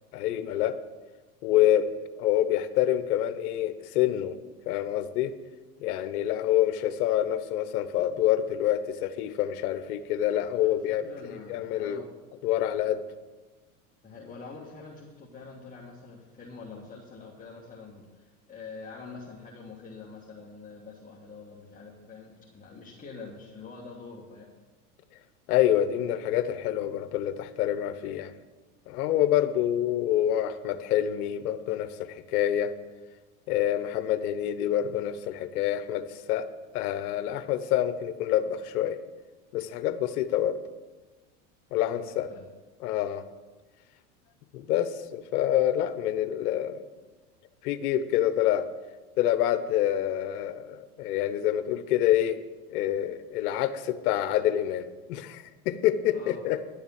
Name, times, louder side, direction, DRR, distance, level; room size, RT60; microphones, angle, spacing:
voice 1, 0.1-0.7 1.4-1.9 2.2-4.3 4.7-5.3 5.8-11.0 11.3-12.0 12.4-13.0 25.5-28.3 28.9-32.7 33.5-36.4 36.7-39.0 39.5-40.6 41.7-42.3 42.8-43.2 44.5-46.8 47.6-48.7 49.2-52.4 52.7-56.6, left 12 dB, 75° left, 12 dB, 1.1 m, -27 dB
voice 2, 10.6-12.1 14.0-24.5 41.9-42.4 56.1-56.4, left 4 dB, 20° left, -4 dB, 1.7 m, -45 dB
11.5 x 7.1 x 7.2 m, 1.2 s
supercardioid pair, 110°, 45 cm